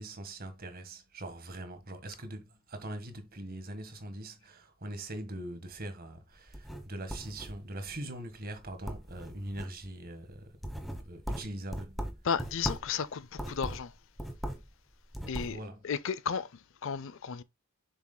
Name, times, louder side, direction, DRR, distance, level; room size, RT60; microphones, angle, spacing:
voice 1, 0.0-10.6 11.0-12.2 15.3-15.9, right 1 dB, 45° right, 1.6 m, -42 dB
sound 1, 6.4-7.9 8.3-8.6 8.8-9.9 10.3-13.0 13.3-14.7 15.0-15.6, equal, ahead, 1.2 m, -39 dB
voice 2, 12.2-13.9 15.3-16.5 16.8-17.4, left 6 dB, 65° left, 0.5 m, -33 dB
7.2 x 6.1 x 2.2 m
head